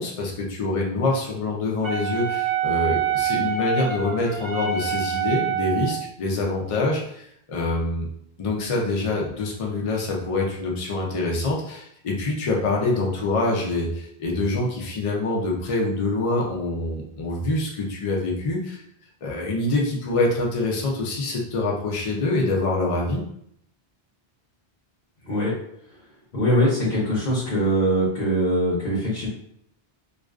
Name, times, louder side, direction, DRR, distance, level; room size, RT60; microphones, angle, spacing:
voice 1, 0.0-8.1 8.4-18.8 19.2-23.2, left 2 dB, 50° left, -2 dB, 0.4 m, -25 dB
Wind instrument woodwind instrument, 1.8-6.0, right 7 dB, 35° right, 0.5 m, -26 dB
voice 2, 26.3-29.3, equal, 70° left, -7 dB, 0.9 m, -22 dB
2.3 x 2.3 x 2.3 m, 0.71 s
omnidirectional pair, 1.1 m